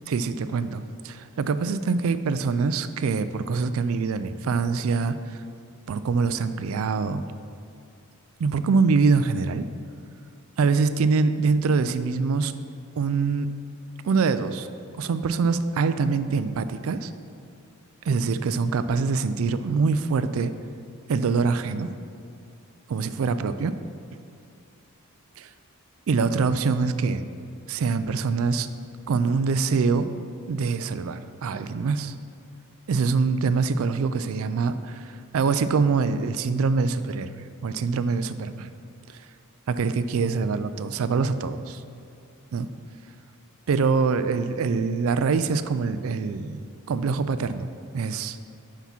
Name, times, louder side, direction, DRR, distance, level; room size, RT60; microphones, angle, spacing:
voice 1, 0.1-5.4 5.9-7.3 8.4-9.6 10.6-12.5 13.0-13.5 14.0-14.7 15.0-17.1 18.1-20.5 21.1-21.9 22.9-23.8 25.4-25.5 26.1-27.2 27.7-28.7 29.1-30.1 30.5-32.1 32.9-37.4 37.6-38.7 39.1-39.2 39.7-41.8 42.5-42.7 43.7-46.6 46.9-47.7 47.9-48.4, right 4 dB, 65° right, 12 dB, 0.4 m, -24 dB
5.8 x 5.7 x 5.9 m, 2.4 s
head